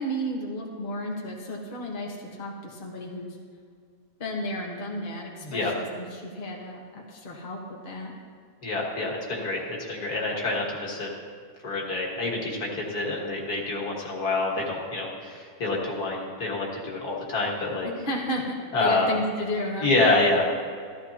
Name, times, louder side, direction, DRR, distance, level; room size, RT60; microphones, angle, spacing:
voice 1, 0.0-3.4 4.2-8.1 17.8-19.9, equal, 35° left, -2 dB, 1.4 m, -33 dB
voice 2, 5.4-5.7 8.6-11.1 11.6-17.9 18.7-19.1 19.8-20.5, left 2 dB, 65° left, -3 dB, 2.3 m, -27 dB
14.0 x 13.5 x 2.9 m, 2.2 s
omnidirectional pair, 1.8 m